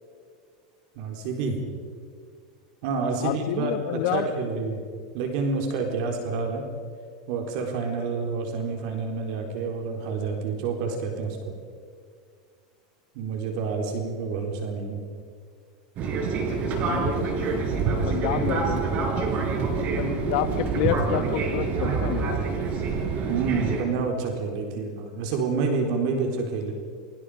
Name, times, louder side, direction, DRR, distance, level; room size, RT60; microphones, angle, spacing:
voice 1, 1.0-1.6 2.8-4.8 5.1-6.6 7.3-11.5 13.1-15.0 23.3-26.7, right 4 dB, 60° right, 3 dB, 4.1 m, -28 dB
voice 2, 3.2-4.3 16.9-17.3 18.1-19.1 19.8-22.4, left 12 dB, 60° left, 11 dB, 1.4 m, -29 dB
Fixed-wing aircraft airplane, 16.0-23.8, right 4 dB, 40° right, 5.1 m, -26 dB
29.0 x 24.0 x 5.1 m, 2.1 s
supercardioid pair, 140°, 4 cm